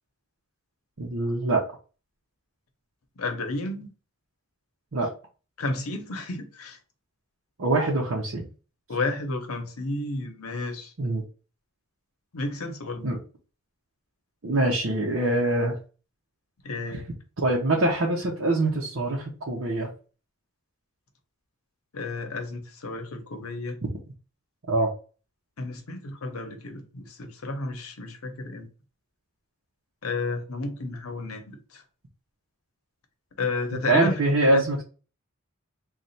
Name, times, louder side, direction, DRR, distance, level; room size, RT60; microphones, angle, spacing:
voice 1, 1.0-1.6 4.9-5.1 7.6-8.5 11.0-11.2 13.0-13.2 14.4-15.8 16.9-17.0 17.4-19.9 23.8-23.9 24.7-24.9 33.7-34.8, right 2 dB, 65° right, 0.8 m, -24 dB
voice 2, 3.2-3.9 5.6-6.8 8.9-10.9 12.3-13.1 16.6-17.0 21.9-23.8 25.6-28.7 30.0-31.8 33.4-34.2 34.5-34.8, left 3 dB, 90° left, 0.8 m, -32 dB
3.2 x 2.4 x 4.0 m
head